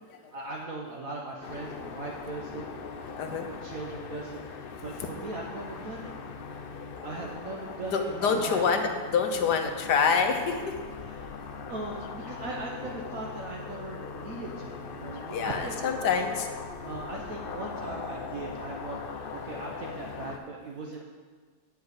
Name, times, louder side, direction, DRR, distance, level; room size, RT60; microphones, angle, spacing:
voice 1, 0.3-2.7 3.2-6.1 7.0-8.6 11.0-11.4 11.7-15.8 16.8-19.0 19.3-21.0, right 2 dB, 60° right, -1 dB, 1.3 m, -39 dB
sound 1, 1.4-20.4, left 5 dB, 65° left, 0.5 m, -40 dB
voice 2, 3.2-3.5 7.9-10.6 15.3-16.5, left 5 dB, 90° left, 5 dB, 1.6 m, -26 dB
10.0 x 4.9 x 8.0 m, 1.6 s
omnidirectional pair, 1.7 m